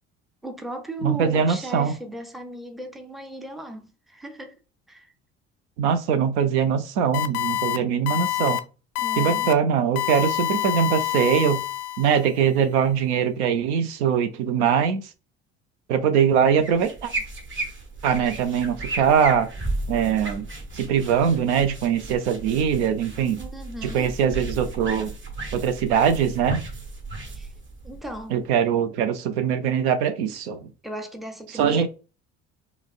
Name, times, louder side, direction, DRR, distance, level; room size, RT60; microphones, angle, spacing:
voice 1, 0.4-4.6 4.9-5.1 9.0-9.5 23.4-24.1 27.3-27.5 27.8-28.4 30.8-31.9, right 1 dB, ahead, 0.6 m, -36 dB
voice 2, 1.0-1.9 5.8-8.6 9.2-11.6 12.0-15.1 15.9-17.1 18.0-19.5 19.9-20.5 20.7-23.4 23.8-25.1 25.5-26.6 28.3-30.6 31.5-31.9, right 7 dB, 75° right, 0.5 m, -22 dB
sound 1, 7.1-7.8 8.1-8.6 9.0-9.5 10.0-12.3, left 15 dB, 65° left, 0.5 m, -26 dB
sound 2, 16.6-28.5, right 2 dB, 30° right, 1.1 m, -34 dB
4.7 x 2.0 x 2.3 m
hypercardioid pair, 60°, 36 cm